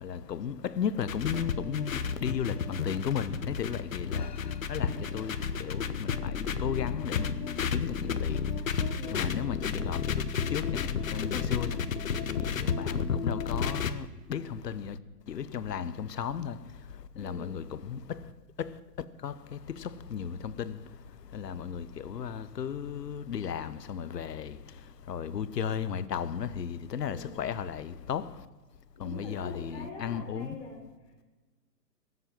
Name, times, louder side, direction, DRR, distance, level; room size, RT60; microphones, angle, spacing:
voice 1, 0.0-4.4 4.7-8.4 9.1-10.2 10.5-11.8 12.4-15.0 15.3-16.6 17.2-18.0 18.6-18.7 19.2-20.8 21.3-24.6 25.1-28.3 29.0-30.5, left 7 dB, 75° left, 1.1 m, -35 dB
sound 1, 1.0-13.9, left 6 dB, 55° left, 1.0 m, -32 dB
voice 2, 8.9-9.4 12.5-12.9 17.1-17.6 26.9-27.4 28.9-30.8, left 3 dB, 30° left, 3.4 m, -45 dB
18.5 x 7.8 x 7.6 m
hypercardioid pair, 170°, 49 cm